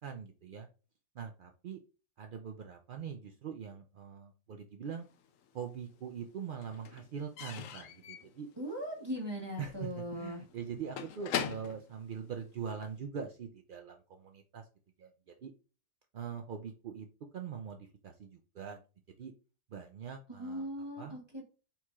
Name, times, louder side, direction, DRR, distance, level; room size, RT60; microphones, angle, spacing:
voice 1, 0.0-0.7 1.1-1.8 2.2-5.0 5.5-8.5 9.6-14.7 15.0-15.5 16.1-17.1 17.3-18.8 19.2-19.3 19.7-20.7 21.0-21.2, right 7 dB, 75° right, 4 dB, 0.4 m, -43 dB
Slam / Squeak / Wood, 5.1-6.0 6.2-13.0, left 8 dB, 70° left, 1.0 m, -42 dB
voice 2, 8.6-10.4 20.3-21.5, equal, 20° right, -2 dB, 1.1 m, -39 dB
4.5 x 4.2 x 2.4 m, 0.33 s
omnidirectional pair, 1.5 m